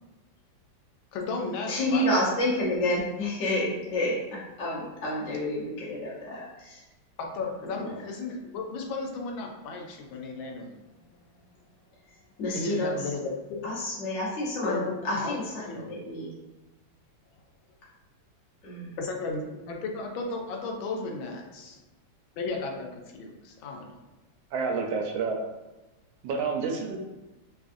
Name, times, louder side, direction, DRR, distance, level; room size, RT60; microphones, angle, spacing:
voice 1, 1.1-2.1 5.3-5.4 7.2-11.1 12.5-13.7 14.6-15.3 15.7-15.9 19.0-21.8 22.4-24.0, left 3 dB, 90° left, 1 dB, 1.4 m, -34 dB
voice 2, 1.7-6.8 7.6-8.0 12.4-13.1 13.6-16.3 18.6-18.9, left 1 dB, 50° left, -7 dB, 1.0 m, -29 dB
voice 3, 24.5-25.4 26.2-27.0, right 4 dB, 85° right, 2 dB, 1.3 m, -29 dB
3.4 x 2.4 x 2.5 m, 1.1 s
omnidirectional pair, 2.1 m